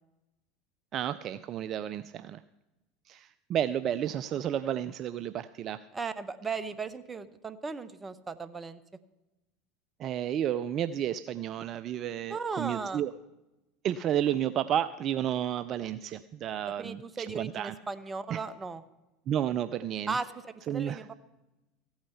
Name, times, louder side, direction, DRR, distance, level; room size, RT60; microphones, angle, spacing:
voice 1, 0.9-2.4 3.1-5.8 10.0-13.1 13.8-17.7 18.3-18.4 19.3-20.2 20.7-21.1, right 10 dB, 45° right, 14 dB, 0.4 m, -31 dB
voice 2, 5.9-8.8 12.3-13.0 16.8-18.8 20.1-21.1, right 4 dB, 20° right, 14 dB, 0.9 m, -36 dB
15.0 x 8.8 x 5.7 m, 0.99 s
hypercardioid pair, 80°, 0 cm